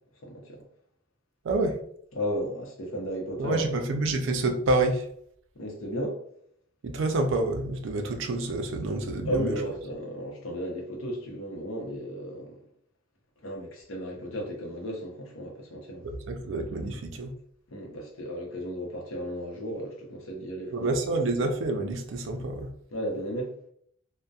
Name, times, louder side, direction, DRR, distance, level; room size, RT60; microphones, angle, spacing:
voice 1, 0.2-0.6 2.1-3.8 5.5-6.2 9.2-12.6 13.4-16.1 17.7-20.8 22.9-23.5, equal, 75° left, 0.7 m, -34 dB
voice 2, 1.4-1.8 3.4-5.1 6.8-9.6 16.0-17.3 20.7-22.7, right 2 dB, 60° right, 0.4 m, -28 dB
2.6 x 2.1 x 2.3 m
head